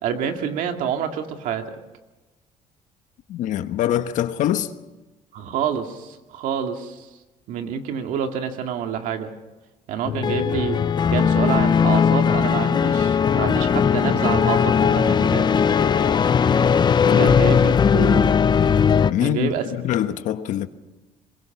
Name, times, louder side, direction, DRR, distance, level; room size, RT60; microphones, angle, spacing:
voice 1, 0.0-1.8 5.3-7.1 7.5-9.3 9.9-10.8 11.1-15.5 17.1-18.4 19.2-19.7, right 8 dB, 75° right, 2.1 m, -27 dB
voice 2, 3.3-4.7 17.1-17.4 17.6-17.7 19.1-20.7, left 11 dB, 70° left, 1.1 m, -24 dB
sound 1, 10.0-19.1, left 7 dB, 35° left, 0.7 m, -18 dB
23.0 x 21.5 x 5.9 m
cardioid pair, 105°, 14 cm